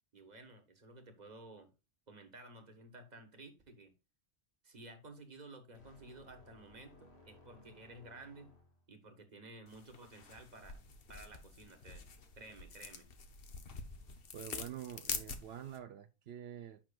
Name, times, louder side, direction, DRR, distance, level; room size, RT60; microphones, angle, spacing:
voice 1, 0.1-1.7 2.1-3.9 4.6-8.5 8.9-10.8 11.1-12.1 12.3-13.1, right 2 dB, 45° right, 1.5 m, -54 dB
sound 1, 5.7-9.0, left 1 dB, 85° left, 1.8 m, -61 dB
sound 2, 9.7-15.8, left 5 dB, 65° left, 1.2 m, -46 dB
voice 2, 14.3-16.8, right 10 dB, 80° right, 0.9 m, -47 dB
8.9 x 6.0 x 2.4 m
omnidirectional pair, 1.1 m